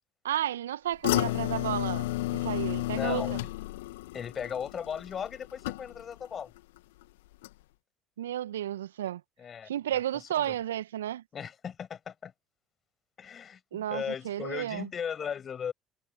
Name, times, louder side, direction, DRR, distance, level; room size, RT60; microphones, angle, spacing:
voice 1, 0.2-3.4 8.2-9.2 9.6-11.2 13.7-14.9, right 12 dB, 75° right, 1.4 m, -32 dB
sound 1, 1.0-6.3 6.6-7.0 7.4-7.5, left 18 dB, 70° left, 1.5 m, -32 dB
voice 2, 2.8-3.4 4.1-6.5 9.4-10.5 11.3-12.3 13.2-15.7, left 7 dB, 40° left, 7.7 m, -37 dB
figure-of-eight pair, 55°, 0 cm